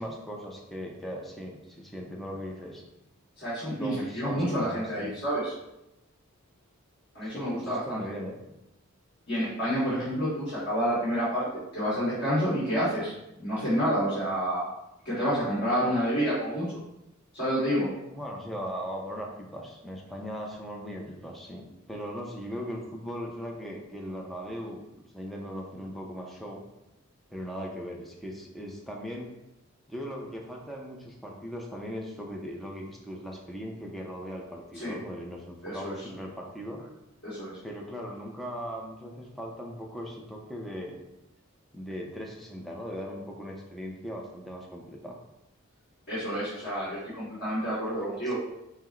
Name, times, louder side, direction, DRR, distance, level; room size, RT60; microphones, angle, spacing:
voice 1, 0.0-2.8 3.7-5.1 7.2-8.4 9.9-10.0 18.1-26.6 27.3-29.3 29.9-36.9 37.6-41.0 41.7-45.2 47.7-47.8 48.1-48.3, equal, ahead, -1 dB, 0.5 m, -39 dB
voice 2, 3.4-5.5 7.1-8.0 9.3-11.4 11.7-13.1 13.4-14.6 15.0-16.6 17.3-17.9 34.7-34.9 35.6-35.9 37.2-37.5 46.1-48.3, equal, 50° left, -11 dB, 1.7 m, -28 dB
5.7 x 2.0 x 4.4 m, 0.89 s
head